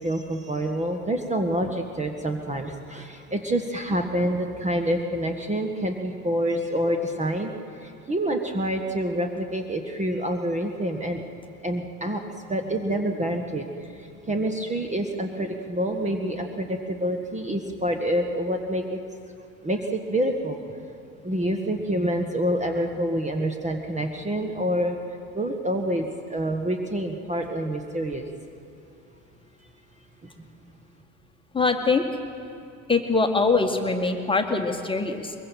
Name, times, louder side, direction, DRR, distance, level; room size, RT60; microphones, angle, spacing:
voice 1, 0.0-7.5 7.8-11.2 11.6-12.2 12.5-13.7 14.3-19.0 19.6-20.6 21.2-25.0 25.3-28.2, right 1 dB, 15° right, 5 dB, 1.5 m, -27 dB
voice 2, 31.5-32.1 32.9-35.3, left 4 dB, 10° left, 4 dB, 1.7 m, -23 dB
23.0 x 22.5 x 5.9 m, 2.7 s
figure-of-eight pair, 70°, 42 cm